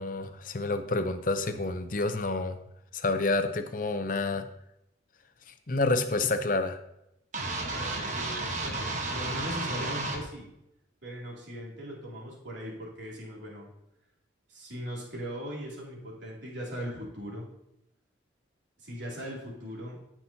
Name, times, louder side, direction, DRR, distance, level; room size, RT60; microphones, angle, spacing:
voice 1, 0.0-2.6 2.9-4.5 5.5-6.8, left 2 dB, 45° left, 9 dB, 0.6 m, -29 dB
sound 1, 7.3-10.2, right 2 dB, 40° right, 1.2 m, -32 dB
voice 2, 7.7-10.5 11.0-13.7 14.5-17.4 18.8-20.0, equal, 75° right, -4 dB, 2.8 m, -39 dB
15.0 x 6.0 x 2.8 m, 0.82 s
head